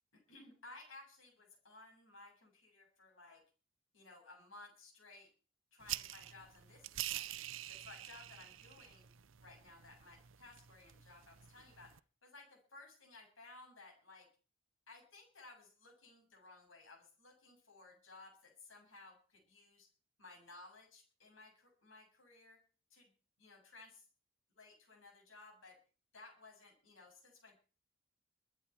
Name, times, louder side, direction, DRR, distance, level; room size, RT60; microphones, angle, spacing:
voice 1, 0.3-3.4 3.9-5.3 5.7-7.3 7.7-9.1 9.4-12.0 12.2-14.3 14.9-19.9 20.2-22.6 22.9-23.1 23.4-24.1 24.5-25.8 26.1-27.6, left 2 dB, 90° left, 2 dB, 7.3 m, -58 dB
sound 1, 5.8-12.0, right 13 dB, 85° right, 0.6 m, -47 dB
23.5 x 10.0 x 4.6 m, 0.38 s
head